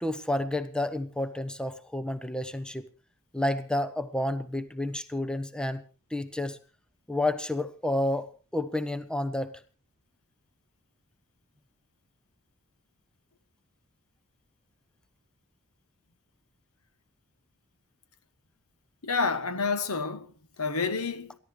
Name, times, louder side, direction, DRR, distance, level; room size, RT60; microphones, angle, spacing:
voice 1, 0.0-2.8 3.3-5.8 6.1-6.6 7.1-9.6, left 1 dB, 5° left, 0.9 m, -30 dB
voice 2, 19.0-21.4, left 4 dB, 70° left, 1.2 m, -29 dB
28.5 x 12.0 x 3.3 m
head